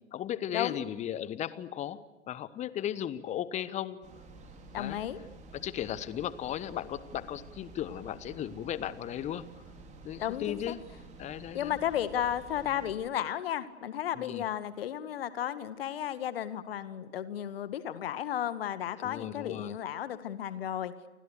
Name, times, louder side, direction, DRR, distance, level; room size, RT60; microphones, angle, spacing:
voice 1, 0.1-2.0 2.3-4.0 4.8-5.0 5.5-9.4 10.0-10.8 11.2-11.8 14.1-14.4 19.0-19.7, left 11 dB, 20° left, 18 dB, 1.2 m, -36 dB
sound 1, 4.0-12.9, right 2 dB, 20° right, 5.5 m, -50 dB
voice 2, 4.7-5.2 10.2-10.7 11.5-20.9, left 10 dB, 55° left, 14 dB, 1.9 m, -33 dB
29.5 x 25.0 x 6.7 m, 1.2 s
figure-of-eight pair, 100°, 35 cm